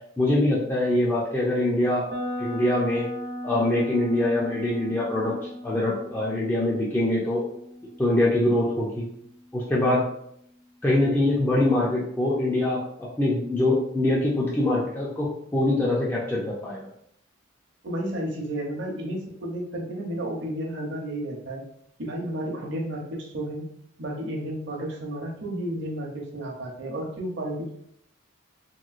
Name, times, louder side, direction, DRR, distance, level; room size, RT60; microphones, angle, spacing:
voice 1, 0.2-2.1 2.4-3.1 3.4-5.4 5.6-7.4 8.0-9.1 9.5-10.1 10.8-16.9, left 1 dB, 10° left, -5 dB, 0.4 m, -24 dB
sound 1, 2.1-10.0, left 1 dB, 85° right, 0.8 m, -37 dB
voice 2, 17.8-21.6 22.0-23.7 24.0-27.7, right 1 dB, 55° right, 0 dB, 0.7 m, -32 dB
3.0 x 2.9 x 2.4 m, 0.72 s
head